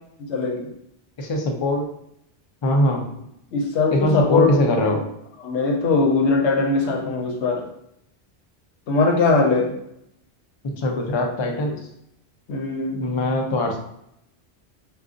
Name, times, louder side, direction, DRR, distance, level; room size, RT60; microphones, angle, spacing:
voice 1, 0.2-0.7 3.5-5.0 5.4-7.7 8.9-9.7 12.5-13.0, left 3 dB, 85° left, 1 dB, 0.9 m, -21 dB
voice 2, 1.2-1.9 2.6-3.0 3.9-5.0 10.6-11.8 13.0-13.8, left 1 dB, 50° left, 1 dB, 0.3 m, -22 dB
2.4 x 2.3 x 3.7 m, 0.77 s
omnidirectional pair, 1.1 m